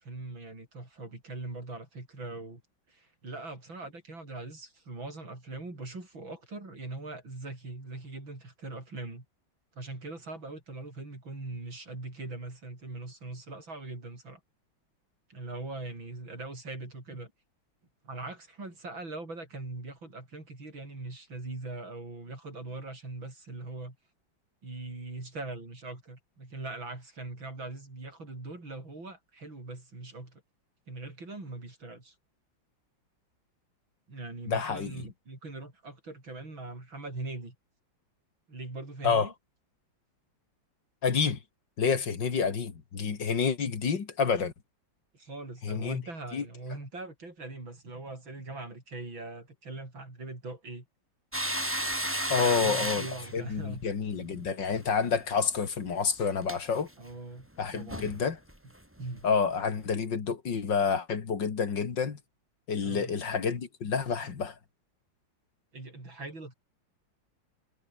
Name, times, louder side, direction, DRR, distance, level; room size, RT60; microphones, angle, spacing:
voice 1, 0.0-2.6 2.9-9.2 9.7-14.4 15.3-17.3 18.0-24.0 24.6-30.4 30.9-32.1 34.1-37.5 38.5-39.3 45.1-50.9 52.4-53.8 57.0-57.5 57.7-58.1 59.0-59.3 62.8-63.2 65.7-66.5, right 2 dB, 80° right, 7.8 m, -41 dB
voice 2, 34.5-34.9 39.0-39.3 41.0-41.4 41.8-44.5 45.6-46.0 46.3-46.4 52.3-53.1 53.3-56.9 57.6-58.4 59.2-62.2 62.7-64.5, left 5 dB, 65° left, 2.9 m, -28 dB
sound 1, 51.3-54.8 55.1-55.3 56.4-56.6 57.6-57.7 57.9-58.2 58.5-58.6 59.2-59.3, equal, 5° right, 4.6 m, -33 dB
omnidirectional pair, 2.1 m